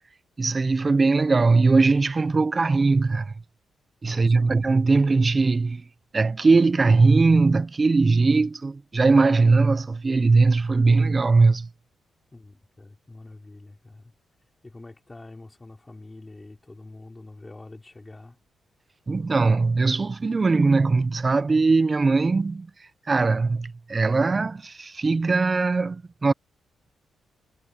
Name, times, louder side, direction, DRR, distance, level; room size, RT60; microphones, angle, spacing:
voice 1, 0.4-3.3 4.0-5.8 6.1-11.7 19.1-22.7 23.1-26.3, right 3 dB, 25° right, 0.5 m, -20 dB
voice 2, 4.0-4.6 12.3-14.1 14.6-18.4, left 2 dB, 15° left, 3.9 m, -45 dB
cardioid pair, 120°, 0 cm